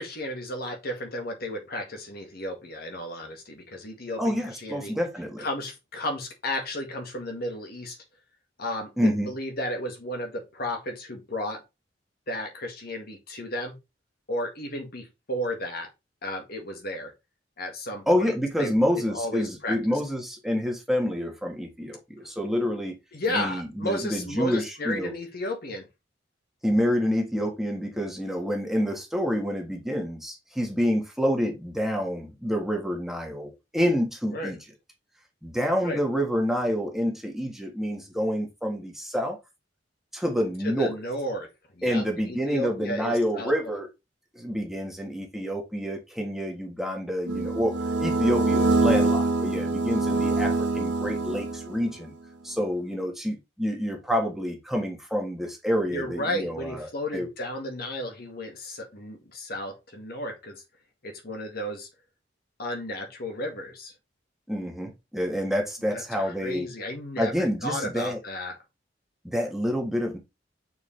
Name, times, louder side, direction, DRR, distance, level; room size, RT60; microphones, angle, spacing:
voice 1, 0.0-4.9 5.4-8.0 8.6-11.6 12.3-13.8 14.3-15.9 16.2-17.1 17.6-18.3 18.6-19.8 23.1-25.9 34.3-34.6 35.8-36.0 40.6-41.5 41.7-43.5 55.9-60.6 61.0-61.9 62.6-63.9 65.9-67.3 67.6-68.6, left 1 dB, 55° left, 1.8 m, -33 dB
voice 2, 4.2-5.5 9.0-9.3 18.1-23.0 23.3-25.1 26.6-34.6 35.4-39.4 40.1-41.0 41.8-43.9 44.3-52.1 52.4-57.3 64.5-66.7 67.2-68.2 69.2-70.2, equal, ahead, 1.4 m, -28 dB
sound 1, 47.3-51.9, right 3 dB, 75° right, 1.1 m, -24 dB
6.5 x 4.7 x 3.3 m
head